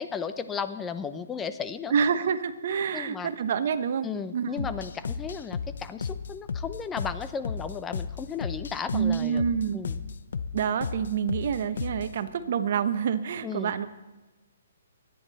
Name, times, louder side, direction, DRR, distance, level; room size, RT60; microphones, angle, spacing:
voice 1, 0.0-1.9 2.9-3.3 4.0-9.4 9.7-10.0 13.4-13.7, left 6 dB, 10° left, 11 dB, 0.7 m, -35 dB
voice 2, 1.9-4.7 8.9-9.8 10.5-13.9, right 7 dB, 55° right, 11 dB, 1.0 m, -27 dB
sound 1, 4.6-12.2, left 5 dB, 70° left, 0.7 m, -34 dB
24.0 x 10.5 x 4.2 m, 1.1 s
hypercardioid pair, 150°, 0 cm